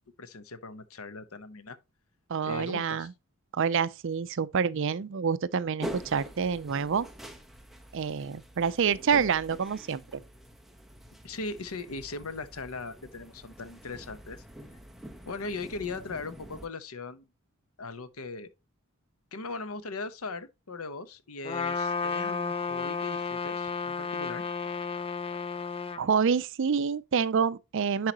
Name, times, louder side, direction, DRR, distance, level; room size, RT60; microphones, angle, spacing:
voice 1, 0.2-1.8 2.4-3.1 11.2-14.4 15.3-17.3 17.8-18.5 19.3-24.5, left 3 dB, 85° left, 1.0 m, -39 dB
voice 2, 2.3-3.1 3.5-7.1 7.9-10.2 26.0-28.1, right 6 dB, 60° right, 0.5 m, -27 dB
sound 1, 5.8-16.7, equal, ahead, 0.9 m, -45 dB
Trumpet, 21.4-26.0, left 5 dB, 25° left, 0.6 m, -32 dB
10.5 x 4.8 x 2.9 m
head